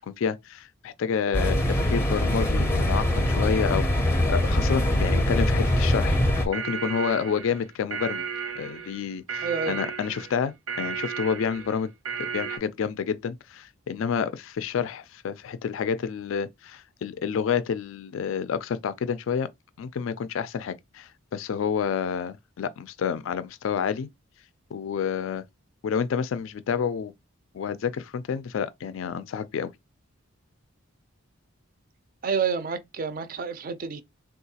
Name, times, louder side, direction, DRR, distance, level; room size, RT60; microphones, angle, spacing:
voice 1, 0.1-8.2 8.6-11.9 12.2-19.5 19.8-24.1 24.7-25.4 25.8-27.1 27.5-29.7, left 7 dB, 65° left, 0.3 m, -29 dB
sound 1, 1.3-6.5, left 1 dB, 10° left, 0.6 m, -23 dB
sound 2, 6.3-12.6, right 7 dB, 90° right, 0.9 m, -34 dB
voice 2, 9.4-9.8 32.2-34.0, right 6 dB, 40° right, 0.4 m, -29 dB
3.7 x 2.3 x 2.7 m
head